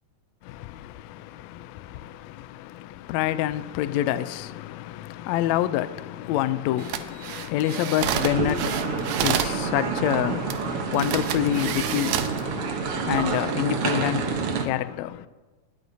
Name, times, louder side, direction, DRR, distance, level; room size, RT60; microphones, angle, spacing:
voice 1, 0.4-15.3, left 13 dB, 80° left, 1.6 m, -28 dB
sound 1, 6.8-9.6 10.5-10.6 10.9-12.4 13.0-13.2, right 10 dB, 85° right, 2.3 m, -29 dB
sound 2, 8.0-14.7, right 5 dB, 60° right, 1.6 m, -28 dB
19.5 x 13.0 x 2.8 m
omnidirectional pair, 3.6 m